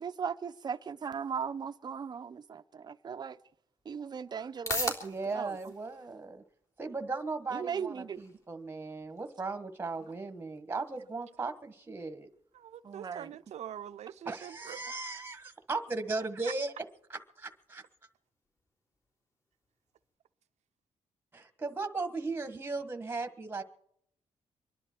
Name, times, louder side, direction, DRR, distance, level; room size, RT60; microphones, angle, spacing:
voice 1, 0.0-3.4 3.8-5.7 7.5-8.2 12.8-13.3, right 6 dB, 35° right, 0.7 m, -38 dB
sound 1, 3.2-20.1, left 2 dB, 25° left, 3.5 m, -46 dB
voice 2, 5.0-6.4 6.8-12.3 14.2-16.7 17.1-17.8 21.3-23.6, right 3 dB, 15° right, 1.4 m, -37 dB
voice 3, 12.5-14.9 16.4-16.5, right 10 dB, 65° right, 0.7 m, -44 dB
25.0 x 11.0 x 4.5 m
wide cardioid pair, 150°, 12 cm